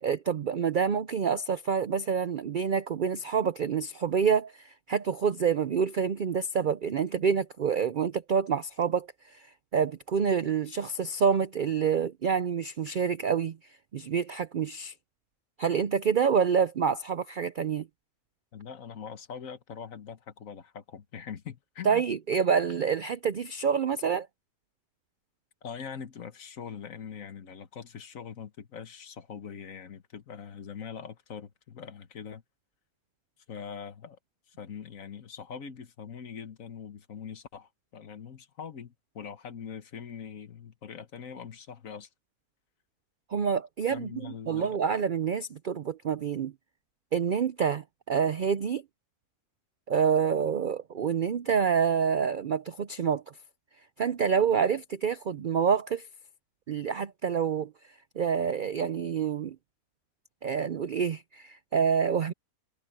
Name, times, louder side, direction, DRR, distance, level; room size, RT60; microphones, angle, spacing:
voice 1, 0.0-13.6 13.9-14.9 15.6-17.9 21.8-24.3 43.3-46.5 47.1-48.8 49.9-53.2 54.0-56.1 56.7-57.7 58.2-59.6 60.4-62.3, right 6 dB, 75° right, 0.4 m, -27 dB
voice 2, 18.5-22.0 25.6-32.4 33.5-34.2 34.5-42.1 43.9-44.8, left 7 dB, 60° left, 1.5 m, -42 dB
omnidirectional pair, 1.6 m